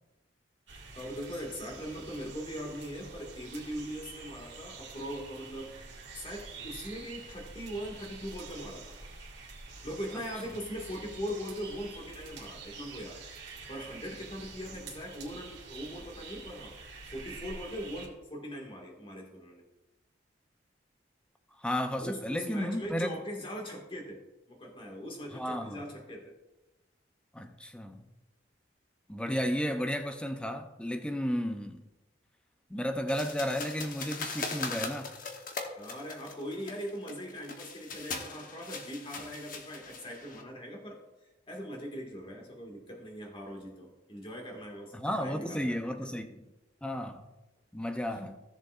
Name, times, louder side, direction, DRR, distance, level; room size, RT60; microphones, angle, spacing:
sound 1, 0.7-18.1, right 4 dB, 85° right, 1.9 m, -47 dB
voice 1, 1.0-5.7 6.1-8.9 9.8-13.2 13.7-16.7 17.1-19.6 22.0-24.2 24.5-26.3 35.7-41.0 41.5-45.8, equal, 30° left, 1.9 m, -40 dB
voice 2, 21.6-23.1 25.3-25.8 27.3-28.1 29.1-31.8 32.7-35.1 44.9-46.4 46.8-47.3 47.7-48.4, equal, 5° left, 0.6 m, -33 dB
sound 2, 33.1-40.4, left 4 dB, 50° left, 1.0 m, -40 dB
15.5 x 7.0 x 2.5 m
head